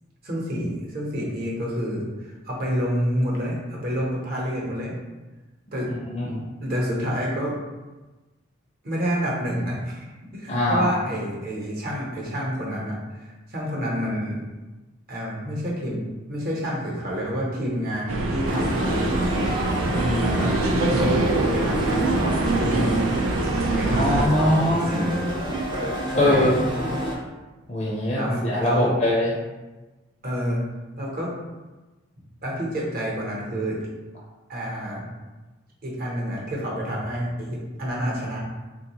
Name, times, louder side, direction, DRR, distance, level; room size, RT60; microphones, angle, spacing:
voice 1, 0.2-4.9 5.7-5.9 6.6-7.6 8.8-14.4 15.1-20.5 20.8-23.0 23.7-25.4 26.1-26.6 28.1-28.9 30.2-30.6 31.0-31.3 32.4-33.8 34.5-35.1 35.8-38.5, equal, 45° right, -4 dB, 0.8 m, -28 dB
voice 2, 6.1-6.4 10.5-10.9 23.8-24.9 26.1-26.7 27.7-29.3, left 1 dB, 35° left, -5 dB, 0.5 m, -22 dB
sound 1, 18.1-24.3, right 2 dB, 85° right, 0.3 m, -24 dB
sound 2, 18.5-27.2, right 1 dB, 25° right, 0.4 m, -28 dB
3.7 x 2.3 x 2.9 m, 1.2 s
head